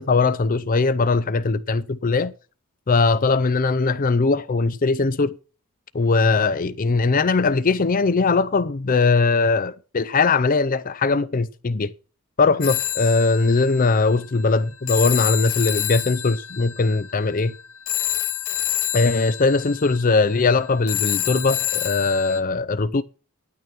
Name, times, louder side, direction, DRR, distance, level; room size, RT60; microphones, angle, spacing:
voice 1, 0.0-2.3 2.9-5.4 5.9-11.9 12.4-17.5 18.9-23.0, left 3 dB, 40° left, 0.5 m, -20 dB
Telephone, 12.6-22.4, left 12 dB, 70° left, 1.1 m, -28 dB
10.5 x 9.4 x 6.0 m
head